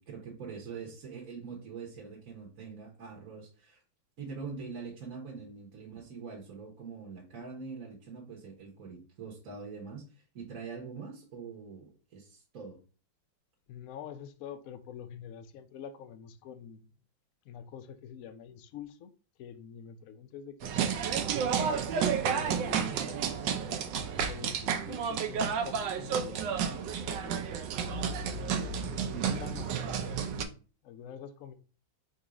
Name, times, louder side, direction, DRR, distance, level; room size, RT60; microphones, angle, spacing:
voice 1, 0.0-3.8 4.2-12.8 22.9-23.0 28.8-29.5, right 5 dB, 50° right, 1.4 m, -44 dB
voice 2, 13.7-16.9 17.4-19.1 19.4-21.0 22.2-23.8 24.1-27.4 28.4-30.5 30.8-31.5, left 8 dB, 85° left, 0.7 m, -46 dB
sound 1, 20.6-30.4, right 7 dB, 75° right, 1.2 m, -31 dB
3.9 x 2.7 x 4.8 m
omnidirectional pair, 2.1 m